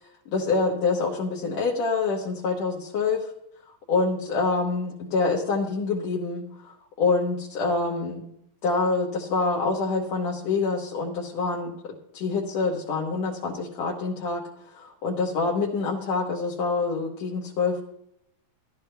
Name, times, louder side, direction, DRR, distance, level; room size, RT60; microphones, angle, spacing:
voice 1, 0.3-3.3 3.9-8.2 8.6-11.8 12.1-14.4 14.7-17.8, left 4 dB, 60° left, -3 dB, 2.0 m, -26 dB
18.0 x 12.0 x 2.2 m, 0.76 s
omnidirectional pair, 4.2 m